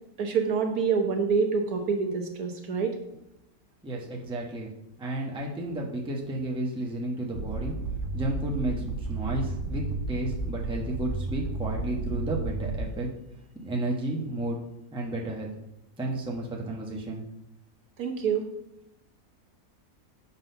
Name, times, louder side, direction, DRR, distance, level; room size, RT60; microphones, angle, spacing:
voice 1, 0.2-3.0 18.0-18.5, right 5 dB, 80° right, 4 dB, 1.5 m, -26 dB
voice 2, 3.8-4.7 5.0-7.7 8.1-13.1 13.6-14.6 14.9-15.5 16.0-17.2, right 1 dB, 5° right, -2 dB, 0.9 m, -32 dB
sound 1, 7.3-13.2, right 3 dB, 60° right, 1.0 m, -32 dB
7.3 x 4.0 x 5.5 m, 0.85 s
omnidirectional pair, 1.5 m